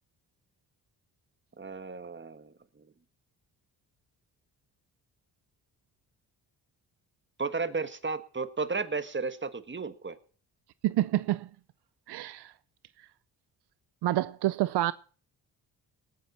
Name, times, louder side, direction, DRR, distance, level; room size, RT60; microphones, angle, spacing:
voice 1, 1.6-2.5 7.4-10.2, right 4 dB, 30° right, 1.6 m, -33 dB
voice 2, 10.8-11.5 12.1-12.5 14.0-14.9, right 15 dB, 75° right, 0.6 m, -28 dB
19.0 x 9.4 x 4.3 m
cardioid pair, 60°, 40 cm